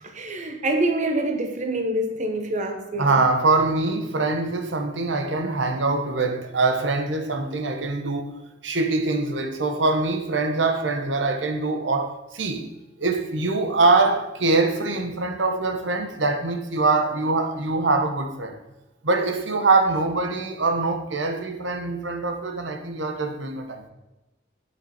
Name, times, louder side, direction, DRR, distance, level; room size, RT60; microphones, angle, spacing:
voice 1, 0.0-3.2, right 1 dB, 40° right, 1.0 m, -26 dB
voice 2, 3.0-8.2 8.6-12.6 13.0-18.6 19.0-23.9, right 3 dB, 85° right, 1.2 m, -23 dB
8.9 x 8.4 x 4.3 m
head